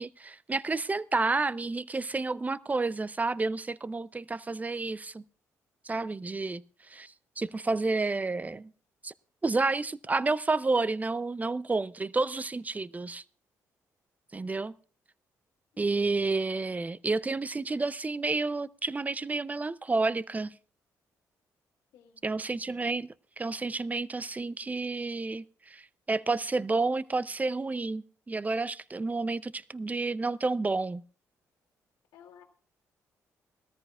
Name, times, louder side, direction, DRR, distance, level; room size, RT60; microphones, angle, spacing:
voice 1, 0.0-5.2 5.9-6.6 6.9-8.7 9.0-9.1 9.4-13.2 14.3-14.7 15.8-20.6 22.2-31.0, right 3 dB, 20° right, 0.5 m, -30 dB
voice 2, 21.9-22.6 32.1-32.4, left 8 dB, 75° left, 1.7 m, -56 dB
20.0 x 13.5 x 2.4 m
supercardioid pair, 60°, 7 cm